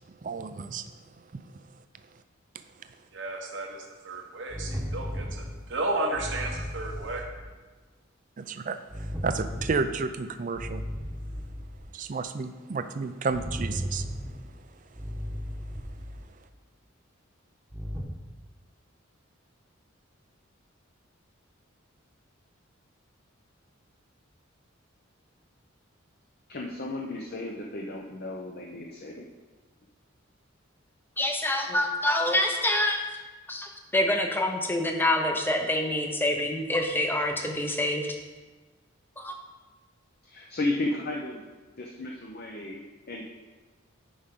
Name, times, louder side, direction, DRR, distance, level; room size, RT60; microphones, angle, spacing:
voice 1, 0.2-0.9 8.4-10.8 11.9-14.1, right 4 dB, 40° right, 10 dB, 0.4 m, -31 dB
voice 2, 3.1-7.2, right 2 dB, 60° right, 1 dB, 0.9 m, -33 dB
sound 1, 4.5-5.7 6.1-7.5 8.9-10.2 10.5-11.9 13.3-14.5 14.9-16.3 17.7-18.0, equal, 10° right, 1.0 m, -35 dB
voice 3, 26.5-29.3 40.2-41.5 41.8-43.2, left 2 dB, 45° left, -1 dB, 0.7 m, -34 dB
voice 4, 31.2-33.0 33.5-38.1 39.2-39.4, left 1 dB, 10° left, 3 dB, 0.7 m, -26 dB
10.0 x 5.1 x 3.7 m, 1.3 s
head